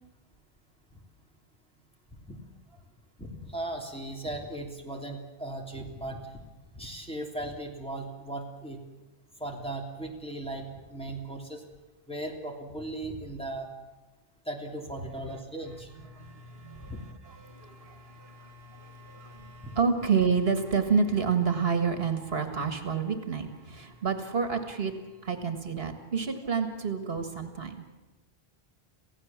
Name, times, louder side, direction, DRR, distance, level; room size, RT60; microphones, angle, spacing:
voice 1, 3.2-6.4 6.7-8.8 9.4-11.6 12.1-13.7 14.5-15.9 16.8-17.0, right 1 dB, 5° left, 0 dB, 3.1 m, -37 dB
voice 2, 16.1-17.0 17.4-24.9 25.2-27.8, right 5 dB, 70° right, 7 dB, 2.0 m, -29 dB
27.5 x 16.5 x 7.4 m, 1.1 s
omnidirectional pair, 1.0 m